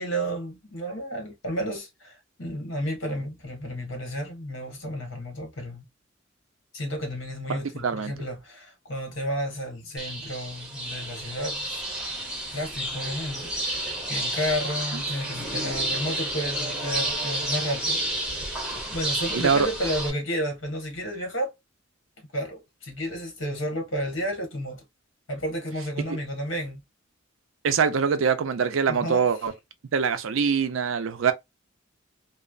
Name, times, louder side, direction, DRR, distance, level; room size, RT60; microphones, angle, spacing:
voice 1, 0.0-5.8 6.7-11.8 12.5-18.0 18.7-21.5 22.3-24.8 25.3-26.8 28.9-29.3, equal, 70° left, 1.2 m, -32 dB
voice 2, 7.5-8.1 19.4-19.7 26.1-26.2 27.6-29.5 29.9-31.3, right 6 dB, 75° right, 0.5 m, -24 dB
sound 1, 10.0-20.1, right 1 dB, 5° right, 0.8 m, -31 dB
3.1 x 2.0 x 2.3 m
head